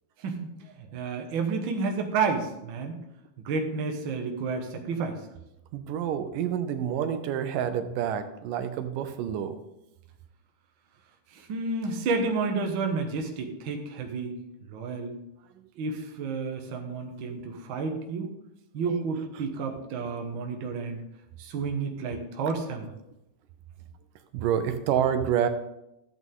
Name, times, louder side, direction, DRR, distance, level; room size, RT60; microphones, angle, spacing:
voice 1, 0.8-2.9 3.4-5.2 11.3-14.3 14.7-15.1 15.8-18.3 18.7-21.0 21.4-22.9, right 4 dB, 55° right, 3 dB, 1.5 m, -30 dB
voice 2, 5.7-9.6 16.7-16.8 18.9-19.0 24.3-25.5, right 9 dB, 85° right, 9 dB, 2.4 m, -28 dB
13.5 x 8.2 x 3.7 m, 0.89 s
omnidirectional pair, 3.8 m